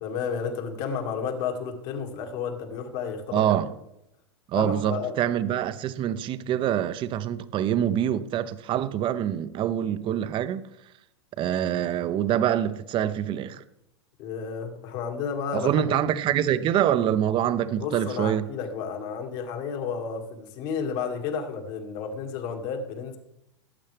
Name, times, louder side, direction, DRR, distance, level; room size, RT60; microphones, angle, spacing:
voice 1, 0.0-3.6 4.5-5.1 14.2-16.0 17.8-23.2, left 6 dB, 50° left, 2.2 m, -32 dB
voice 2, 3.3-3.7 4.5-10.6 11.4-13.6 15.5-18.4, right 10 dB, 35° right, 0.8 m, -25 dB
17.5 x 8.6 x 3.4 m
hypercardioid pair, 105°, 15 cm